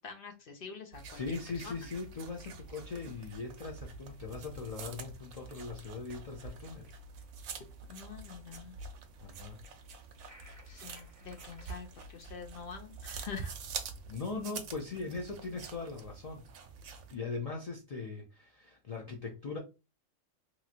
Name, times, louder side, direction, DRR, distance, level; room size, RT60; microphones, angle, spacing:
voice 1, 0.0-1.2 1.6-1.9 7.9-8.7 10.7-13.5, left 6 dB, 55° left, 0.7 m, -46 dB
sound 1, 0.9-17.1, right 5 dB, 75° right, 0.9 m, -46 dB
voice 2, 1.1-6.9 9.2-9.6 14.1-16.4 17.1-19.6, left 4 dB, 75° left, 0.3 m, -40 dB
sound 2, 10.2-11.8, right 1 dB, 15° left, 1.4 m, -57 dB
3.0 x 2.5 x 2.7 m
omnidirectional pair, 1.3 m